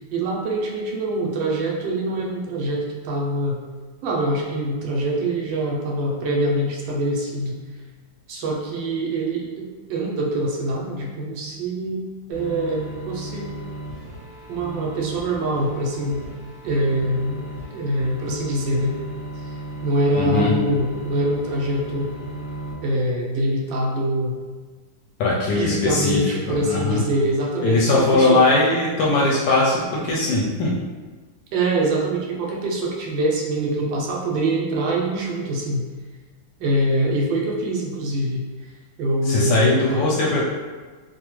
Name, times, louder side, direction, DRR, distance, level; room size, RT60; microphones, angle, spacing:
voice 1, 0.1-3.6 4.0-7.6 8.3-13.6 14.5-16.3 16.6-17.4 17.7-19.0 19.8-22.1 22.8-24.3 25.5-28.5 31.5-35.8 36.6-38.4 39.0-40.2, right 1 dB, 75° right, -2 dB, 1.2 m, -24 dB
sound 1, 12.3-22.7, right 1 dB, 50° right, 1.2 m, -35 dB
voice 2, 20.2-20.5 25.2-27.0 27.6-30.8 39.3-40.5, left 2 dB, 75° left, -4 dB, 1.0 m, -20 dB
3.3 x 2.1 x 3.0 m, 1.4 s
omnidirectional pair, 2.1 m